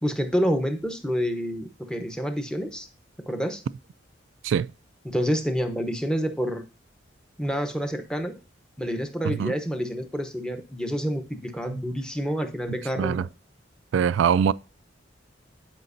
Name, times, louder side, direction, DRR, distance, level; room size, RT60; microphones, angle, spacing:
voice 1, 0.0-2.9 3.3-3.6 5.0-6.6 7.4-8.3 8.8-13.3, equal, 5° left, 0.9 m, -28 dB
voice 2, 13.0-13.3 13.9-14.5, right 7 dB, 80° right, 0.3 m, -23 dB
11.5 x 5.1 x 2.6 m
head